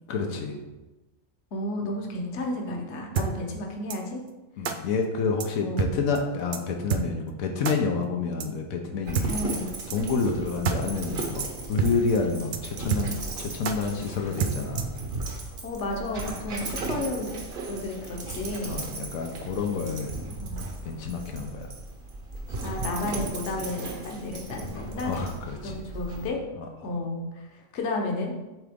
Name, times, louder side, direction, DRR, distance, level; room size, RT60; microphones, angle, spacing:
voice 1, 0.1-0.6 4.6-9.4 9.9-14.9 18.7-20.2 20.8-21.7 25.0-25.8 26.6-27.0, left 4 dB, 90° left, 2 dB, 1.2 m, -29 dB
voice 2, 1.5-4.2 5.6-5.9 9.3-9.8 15.6-17.4 17.7-18.8 20.2-20.7 22.6-25.2 25.6-26.4 26.8-28.3, left 2 dB, 60° left, 1 dB, 1.2 m, -32 dB
sound 1, 3.2-3.3 3.9-4.0 4.6-4.8 5.4-5.5 5.8-5.9 6.2-6.3 6.5-6.6 6.9-7.0 7.6-7.8 8.4-8.5 9.1-9.3 9.9-10.0 10.3-10.4 10.6-10.8 11.0-11.1 11.4-11.5 11.8-11.9 12.2-12.3 12.5-12.6 12.9-13.3 13.6-13.8 14.4-15.0, right 7 dB, 75° right, 0.4 m, -27 dB
Dog, 9.1-26.3, right 2 dB, 45° right, 1.0 m, -36 dB
7.7 x 3.8 x 3.5 m, 1.1 s
omnidirectional pair, 1.4 m